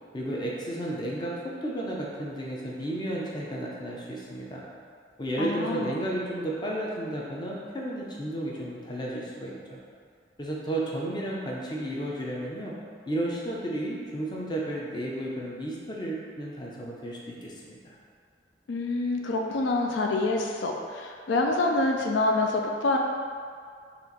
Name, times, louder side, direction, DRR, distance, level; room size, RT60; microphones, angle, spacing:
voice 1, 0.1-4.6 5.2-9.8 10.4-12.7 13.0-18.0, right 1 dB, 25° left, -4 dB, 0.5 m, -33 dB
voice 2, 5.4-6.0 18.7-23.0, left 2 dB, 90° left, 1 dB, 0.4 m, -26 dB
4.3 x 2.5 x 4.0 m, 2.1 s
head